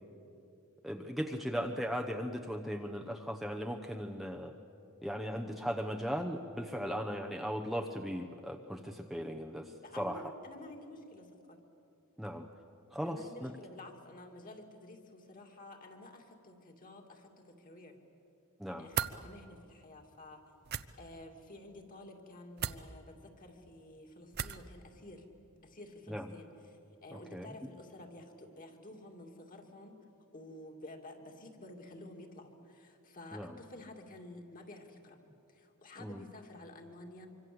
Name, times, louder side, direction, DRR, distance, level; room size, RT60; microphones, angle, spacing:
voice 1, 0.8-4.5 5.0-10.2 12.2-12.5 12.9-13.5 18.6-18.9 26.1-26.3 27.1-27.5 33.3-33.5 36.0-36.2, equal, ahead, 2 dB, 0.9 m, -38 dB
voice 2, 9.8-11.6 13.1-18.0 18.7-20.4 21.0-25.3 25.6-30.0 30.3-35.2 35.5-37.3, left 1 dB, 40° left, 3 dB, 2.6 m, -51 dB
sound 1, 18.9-19.2 20.6-20.8 22.6-22.8 24.3-24.7, right 8 dB, 45° right, 0.7 m, -35 dB
25.5 x 25.0 x 7.9 m, 2.7 s
head